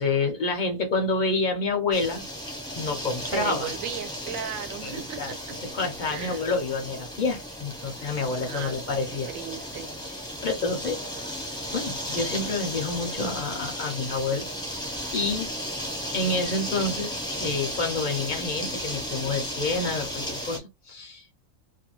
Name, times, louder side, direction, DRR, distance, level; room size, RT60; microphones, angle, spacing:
voice 1, 0.0-2.2 2.8-3.7 4.8-5.3 5.7-9.3 10.0-11.0 11.7-15.5 16.1-17.2 17.4-21.3, left 3 dB, 60° left, 0.5 m, -28 dB
sound 1, 1.9-20.6, equal, 5° left, 0.4 m, -34 dB
voice 2, 3.3-5.4 6.1-6.4 8.5-9.9, right 8 dB, 85° right, 1.0 m, -36 dB
2.5 x 2.3 x 2.9 m
omnidirectional pair, 1.4 m